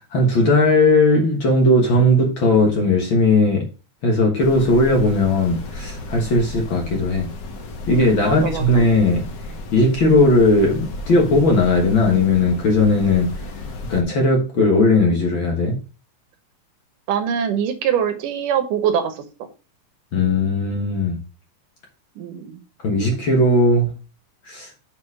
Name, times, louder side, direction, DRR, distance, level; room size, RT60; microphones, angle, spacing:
voice 1, 0.1-3.7 4.0-7.3 7.9-9.3 9.7-13.3 13.9-15.8 20.1-21.2 22.8-23.9 24.5-24.7, left 2 dB, 50° left, 1 dB, 1.8 m, -17 dB
sound 1, 4.4-14.0, left 2 dB, 75° left, 1.0 m, -33 dB
voice 2, 8.2-8.8 17.1-19.2 22.2-22.6, right 8 dB, 85° right, 8 dB, 2.6 m, -23 dB
7.0 x 4.7 x 4.8 m, 0.33 s
omnidirectional pair, 3.7 m